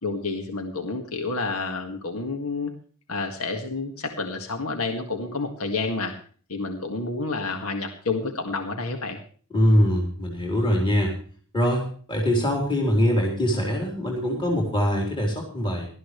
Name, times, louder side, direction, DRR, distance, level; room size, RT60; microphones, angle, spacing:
voice 1, 0.0-2.7 3.1-6.1 6.5-9.2, left 3 dB, 75° left, 4 dB, 1.9 m, -29 dB
voice 2, 9.5-11.1 11.5-15.9, equal, 20° left, -1 dB, 3.8 m, -23 dB
18.5 x 13.0 x 3.2 m, 0.43 s
head